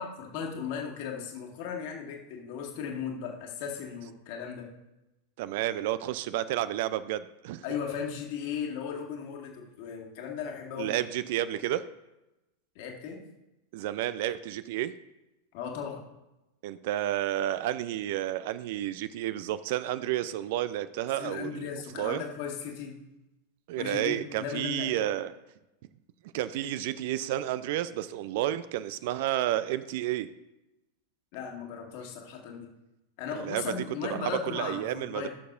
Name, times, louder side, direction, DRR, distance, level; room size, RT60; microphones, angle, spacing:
voice 1, 0.0-4.7 7.6-11.0 12.8-13.2 15.5-16.0 21.2-23.0 23.8-25.2 31.3-32.7 33.2-35.3, left 7 dB, 50° left, 0 dB, 2.0 m, -36 dB
voice 2, 5.4-7.6 10.8-11.9 13.7-14.9 16.6-21.7 22.0-22.2 23.7-25.3 26.3-30.3 33.3-33.7 34.0-35.3, right 13 dB, 50° right, 14 dB, 0.4 m, -31 dB
17.5 x 6.6 x 2.6 m, 0.97 s
figure-of-eight pair, 90°, 0 cm